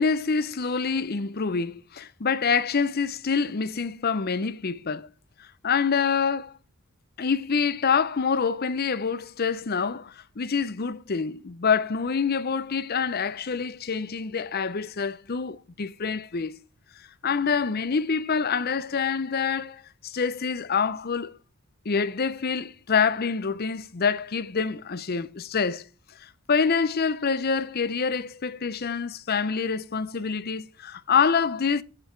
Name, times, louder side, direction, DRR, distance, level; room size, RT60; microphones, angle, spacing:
voice 1, 0.0-5.1 5.6-6.6 7.2-16.6 17.2-21.4 21.9-25.8 26.2-31.8, left 5 dB, 45° left, 0.6 m, -26 dB
9.7 x 7.9 x 4.5 m
head